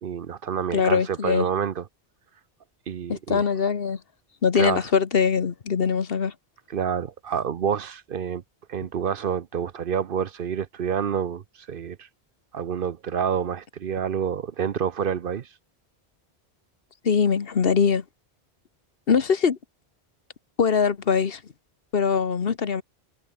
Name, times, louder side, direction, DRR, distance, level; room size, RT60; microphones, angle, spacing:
voice 1, 0.0-1.9 2.9-3.4 4.5-4.9 6.7-8.4 8.7-11.4 11.7-12.1 12.5-15.5, right 7 dB, 60° right, 0.9 m, -28 dB
voice 2, 0.7-1.5 3.1-4.0 4.4-6.3 17.0-18.0 19.1-19.6 20.6-21.4 21.9-22.8, left 6 dB, 65° left, 1.4 m, -22 dB
omnidirectional pair, 1.1 m